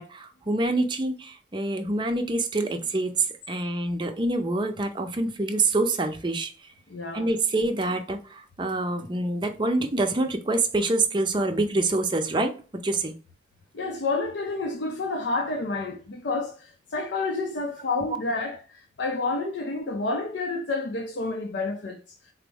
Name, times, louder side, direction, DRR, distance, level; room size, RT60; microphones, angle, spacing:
voice 1, 0.0-6.7 7.1-13.1, right 2 dB, 25° right, 0.5 m, -26 dB
voice 2, 6.9-7.3 13.7-22.0, left 3 dB, 75° left, 0.6 m, -29 dB
4.0 x 2.0 x 3.4 m
head